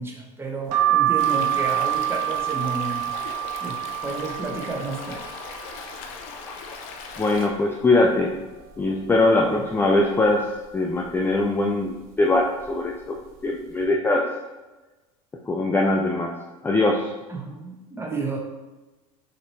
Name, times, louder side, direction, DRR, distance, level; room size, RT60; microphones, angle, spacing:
voice 1, 0.0-3.1 3.6-5.2 9.4-9.6 17.3-18.4, right 3 dB, 15° right, 0 dB, 1.0 m, -31 dB
sound 1, 0.7-6.4 6.8-7.6 8.0-8.1 8.3-9.4 9.9-10.3 11.0-11.3 12.1-12.4 12.6-12.8, right 12 dB, 75° right, 0.9 m, -27 dB
Stream, 1.2-7.5, left 5 dB, 70° left, 0.6 m, -38 dB
voice 2, 7.2-8.3 8.8-10.4 10.7-13.2 13.4-14.2 15.5-16.3 16.6-17.1, left 2 dB, 10° left, 0 dB, 0.4 m, -21 dB
5.7 x 3.0 x 3.1 m, 1.2 s
supercardioid pair, 100°, 18 cm